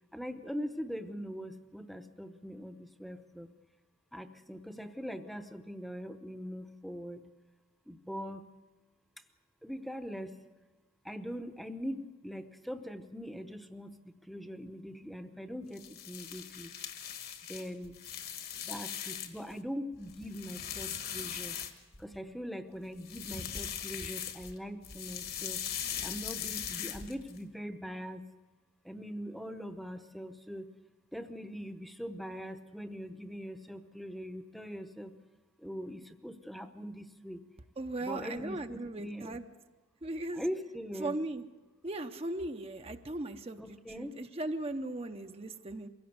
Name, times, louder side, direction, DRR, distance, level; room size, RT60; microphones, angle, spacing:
voice 1, 0.1-3.5 4.1-7.2 7.9-8.4 9.6-10.4 11.0-16.7 17.5-18.0 18.6-21.6 22.0-25.6 26.0-28.3 28.8-30.7 31.1-35.2 35.6-37.4 38.0-39.4 40.3-41.2 43.6-44.1, equal, ahead, 9 dB, 0.8 m, -42 dB
sound 1, 15.7-19.5 19.9-22.2 22.9-24.6 24.8-27.4, left 8 dB, 50° left, 1.5 m, -40 dB
voice 2, 37.8-39.4 40.0-40.4 41.0-41.4 41.8-45.9, right 2 dB, 30° right, 6 dB, 0.7 m, -38 dB
23.5 x 16.5 x 8.1 m, 1.2 s
head